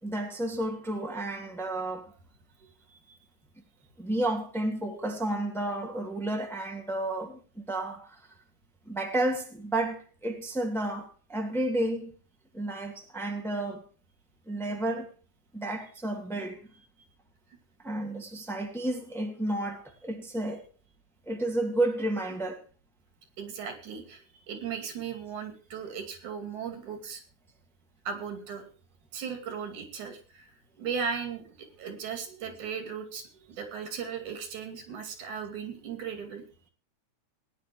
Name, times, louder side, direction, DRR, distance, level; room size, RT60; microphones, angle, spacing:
voice 1, 0.0-2.1 4.0-8.2 8.9-12.1 12.5-13.8 14.5-15.1 15.5-16.6 17.8-20.6 21.3-22.6, right 1 dB, ahead, 2.0 m, -31 dB
voice 2, 23.4-27.2 28.1-28.7 29.1-30.5 30.8-36.4, right 6 dB, 85° right, 4.1 m, -37 dB
20.0 x 10.0 x 3.1 m
omnidirectional pair, 3.3 m